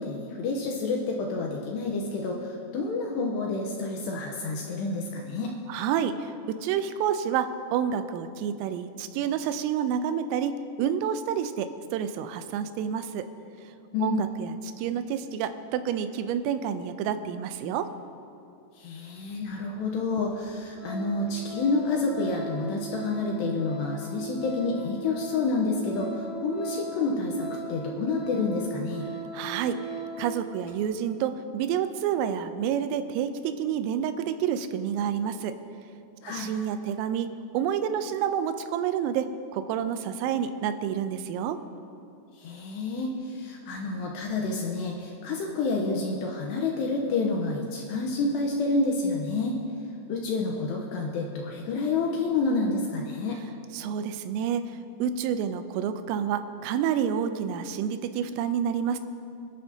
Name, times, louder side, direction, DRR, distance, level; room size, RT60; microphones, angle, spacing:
voice 1, 0.0-5.5 13.9-14.2 18.8-29.1 36.2-36.5 42.3-49.6 50.1-53.4, left 3 dB, 75° left, 0 dB, 2.6 m, -29 dB
voice 2, 5.7-10.5 10.8-13.3 14.0-17.9 29.3-29.8 30.2-35.5 36.3-39.3 39.5-41.6 53.7-54.7 55.0-59.0, right 8 dB, 85° right, 10 dB, 3.3 m, -29 dB
Organ, 20.3-20.5 20.7-30.3 30.7-30.8, right 3 dB, 50° left, 2.9 m, -38 dB
26.5 x 11.0 x 2.8 m, 2.6 s
omnidirectional pair, 5.8 m